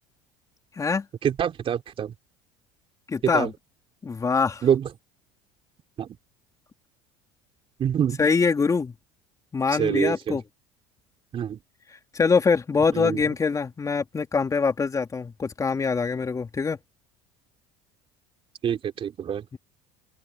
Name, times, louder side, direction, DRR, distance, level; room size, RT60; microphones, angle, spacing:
voice 1, 1.2-2.1 3.2-3.5 4.6-4.9 6.0-6.2 7.8-8.2 9.7-10.4 11.3-11.6 12.9-13.2 18.6-19.5, right 9 dB, 40° right, 3.3 m, -25 dB
voice 2, 3.1-3.5 4.0-4.6 8.2-8.9 9.5-10.4 12.1-16.8 19.5-19.6, left 5 dB, 25° left, 3.4 m, -24 dB
open air
supercardioid pair, 95°, 14 cm